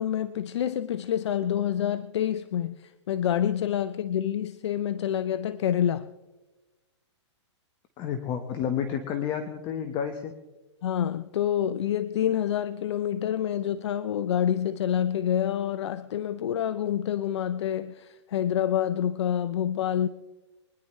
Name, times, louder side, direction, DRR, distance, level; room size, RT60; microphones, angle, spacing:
voice 1, 0.0-6.1 10.8-20.1, left 10 dB, 70° left, 0.6 m, -27 dB
voice 2, 8.0-10.3, left 8 dB, 30° left, 1.3 m, -30 dB
24.5 x 10.5 x 3.2 m
hypercardioid pair, 130°, 15 cm